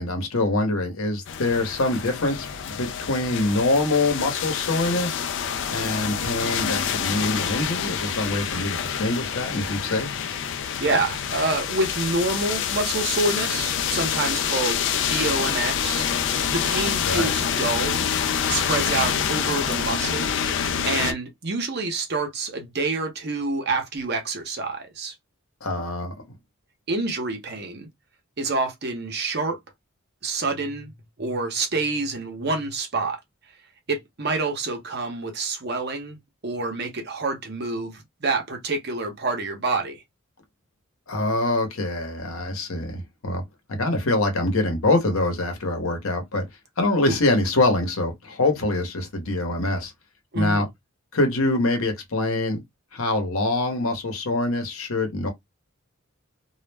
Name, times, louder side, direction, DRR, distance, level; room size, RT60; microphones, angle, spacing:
voice 1, 0.0-5.2 5.7-10.1 17.0-17.3 25.6-26.1 41.1-43.4 43.7-46.4 46.8-49.9 50.3-50.7 51.1-52.6 52.9-55.3, left 2 dB, 80° left, 0.9 m, -24 dB
sound 1, 1.3-21.1, left 8 dB, 60° left, 0.4 m, -27 dB
voice 2, 10.6-18.1 18.4-20.3 20.8-25.1 26.9-27.9 28.4-29.6 30.2-30.9 31.2-33.2 33.9-40.0 47.1-47.2 50.3-50.7, right 3 dB, 50° right, 0.7 m, -27 dB
2.3 x 2.0 x 3.3 m
head